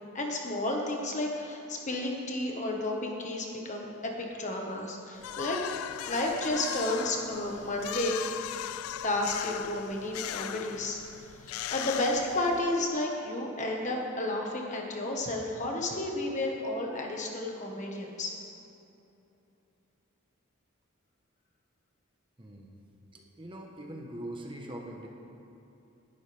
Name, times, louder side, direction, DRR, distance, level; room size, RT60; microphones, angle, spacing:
voice 1, 0.1-5.6 6.0-8.3 9.0-18.4, left 1 dB, 35° left, 0 dB, 1.4 m, -32 dB
sound 1, 5.2-12.9, left 11 dB, 80° left, 0.3 m, -38 dB
voice 2, 22.4-22.8 23.1-25.1, right 1 dB, 25° right, 1 dB, 1.1 m, -42 dB
18.0 x 11.0 x 3.5 m, 2.9 s
head